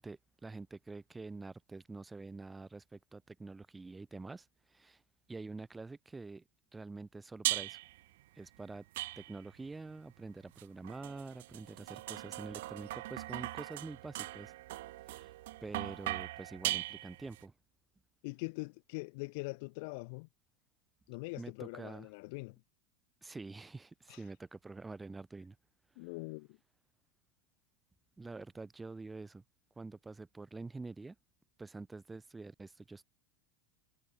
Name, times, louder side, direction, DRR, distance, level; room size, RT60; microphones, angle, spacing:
voice 1, 0.0-5.0 5.3-6.4 6.7-7.8 8.4-8.8 9.2-14.5 15.1-15.3 15.6-17.5 21.4-22.1 23.2-25.6 28.2-29.4 29.8-31.1 31.6-33.0, right 3 dB, 15° right, 2.7 m, -47 dB
sound 1, 7.4-8.0 8.9-9.6 10.6-17.4, right 17 dB, 70° right, 0.9 m, -39 dB
voice 2, 18.2-20.3 21.1-22.6 24.1-24.3 26.0-26.6, left 29 dB, 65° left, 0.8 m, -43 dB
hypercardioid pair, 95°, 0 cm